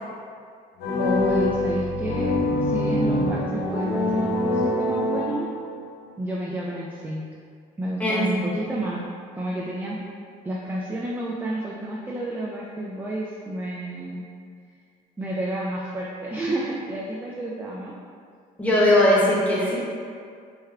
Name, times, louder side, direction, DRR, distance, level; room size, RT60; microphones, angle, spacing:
sound 1, 0.8-5.8, left 1 dB, 70° left, 0.7 m, -24 dB
voice 1, 1.0-2.3 2.6-5.5 6.2-7.2 7.8-9.0 9.3-10.0 10.4-14.2 15.2-17.9, right 1 dB, 10° right, -4 dB, 0.3 m, -30 dB
voice 2, 18.6-19.8, left 1 dB, 10° left, -7 dB, 0.9 m, -20 dB
3.4 x 2.1 x 3.5 m, 2.2 s
cardioid pair, 110°, 17 cm